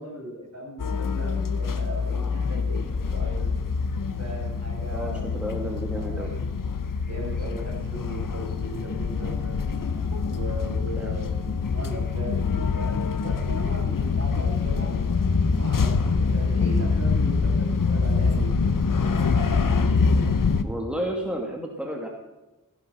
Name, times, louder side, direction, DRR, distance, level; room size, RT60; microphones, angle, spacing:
voice 1, 0.0-3.6 4.2-5.4 5.7-6.4 7.0-9.6 10.2-15.0 15.5-19.1, right 1 dB, 55° right, -1 dB, 6.4 m, -38 dB
sound 1, 0.8-20.6, left 4 dB, 85° left, 0.9 m, -25 dB
voice 2, 4.9-6.4 11.0-11.2 20.6-22.1, equal, 5° right, 0 dB, 2.5 m, -32 dB
16.5 x 10.5 x 5.7 m, 1.0 s
wide cardioid pair, 50°, 32 cm